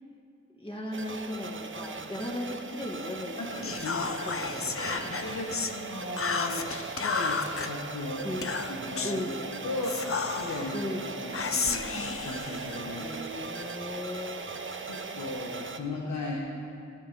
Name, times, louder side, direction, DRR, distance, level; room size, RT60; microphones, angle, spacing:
voice 1, 0.5-3.6 4.0-5.1 8.2-8.5 9.0-9.4 10.7-11.1 12.9-14.4, left 1 dB, 20° left, -1 dB, 2.3 m, -37 dB
sound 1, 0.9-15.8, right 4 dB, 45° right, 1.0 m, -39 dB
voice 2, 3.4-4.4 4.7-8.3 8.7-9.2 9.6-10.0 10.3-13.1 14.8-16.4, left 2 dB, 80° left, -2 dB, 1.6 m, -36 dB
Whispering, 3.6-5.8 6.2-7.7 8.4-9.2 9.8-10.7 11.3-13.2, left 5 dB, 50° left, 0.8 m, -32 dB
20.0 x 9.8 x 3.8 m, 2.5 s
cardioid pair, 55°, 29 cm